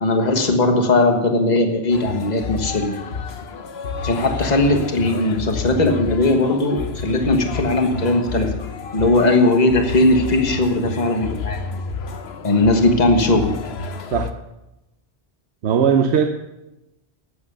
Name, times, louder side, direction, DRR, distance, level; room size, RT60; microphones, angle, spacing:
voice 1, 0.0-3.0 4.0-8.5 8.9-11.6 12.4-13.5, left 2 dB, 40° left, 4 dB, 1.5 m, -18 dB
sound 1, 1.9-14.3, left 4 dB, 75° left, 1.1 m, -30 dB
voice 2, 15.6-16.3, right 7 dB, 90° right, 5 dB, 1.1 m, -18 dB
13.0 x 8.8 x 6.8 m, 0.96 s
omnidirectional pair, 1.1 m